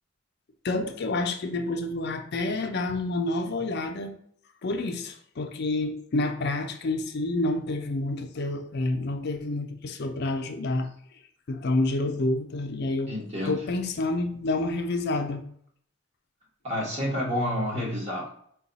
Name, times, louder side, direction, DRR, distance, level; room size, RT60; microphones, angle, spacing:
voice 1, 0.6-4.1 4.6-10.9 11.5-13.2 13.5-15.5, left 2 dB, 55° left, 6 dB, 0.5 m, -28 dB
voice 2, 13.0-13.6 16.6-18.3, left 1 dB, 35° right, -3 dB, 1.4 m, -29 dB
4.7 x 2.3 x 4.0 m, 0.64 s
head